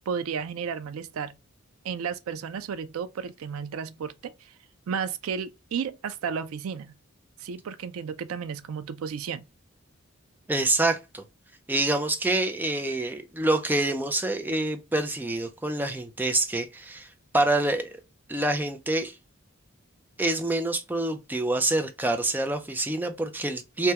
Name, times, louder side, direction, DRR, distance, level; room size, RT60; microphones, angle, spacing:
voice 1, 0.1-1.4 1.8-4.6 4.9-6.9 7.4-9.4, right 6 dB, 80° right, 0.4 m, -33 dB
voice 2, 10.5-11.2 11.7-17.1 17.3-18.0 18.3-19.2 20.2-23.9, right 2 dB, 10° right, 0.4 m, -26 dB
3.4 x 2.1 x 2.8 m
head